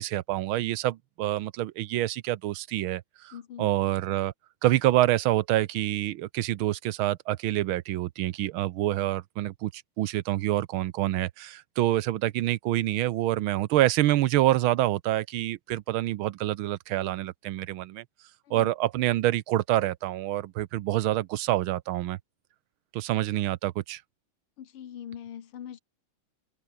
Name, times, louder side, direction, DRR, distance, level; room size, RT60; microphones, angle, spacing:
voice 1, 0.0-4.3 4.6-18.0 18.5-22.2 22.9-24.0, right 15 dB, 75° right, 1.5 m, -27 dB
voice 2, 3.3-3.7 18.5-18.7 24.6-25.8, left 9 dB, 90° left, 2.4 m, -42 dB
omnidirectional pair, 2.3 m